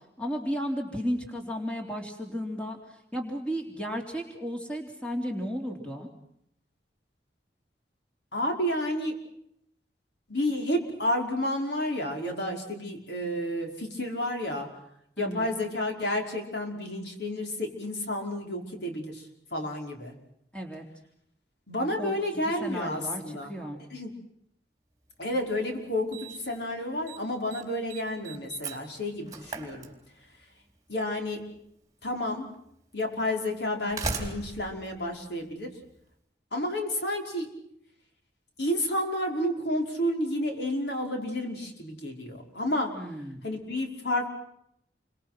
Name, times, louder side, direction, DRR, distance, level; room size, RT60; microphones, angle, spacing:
voice 1, 0.2-6.1 15.2-15.5 20.5-20.9 22.0-22.1 22.6-23.8 42.9-43.4, equal, 5° left, 2 dB, 3.5 m, -34 dB
voice 2, 8.3-9.2 10.3-14.7 15.2-19.2 19.5-20.1 21.7-23.6 23.9-24.1 25.2-29.9 30.9-31.6 32.0-32.5 32.9-35.8 36.5-37.6 38.6-43.0 43.4-44.3, left 1 dB, 75° left, 2 dB, 5.4 m, -30 dB
Slam, 25.3-25.4 26.1-26.6 26.9-27.2 27.5-30.4 31.6-31.7 32.5-32.6 33.6-35.9, right 3 dB, 20° right, 4.0 m, -38 dB
30.0 x 25.0 x 6.1 m, 0.73 s
head